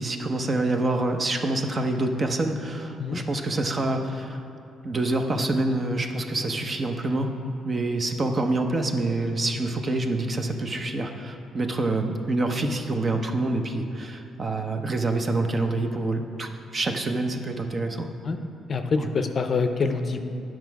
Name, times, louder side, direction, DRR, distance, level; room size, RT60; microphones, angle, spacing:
voice 1, 0.0-4.4 4.8-7.3 7.6-18.1 19.0-19.1, right 2 dB, 35° right, 5 dB, 0.7 m, -26 dB
voice 2, 18.7-20.2, left 4 dB, 45° left, 7 dB, 0.5 m, -25 dB
9.3 x 6.1 x 4.6 m, 2.7 s
cardioid pair, 90°, 0 cm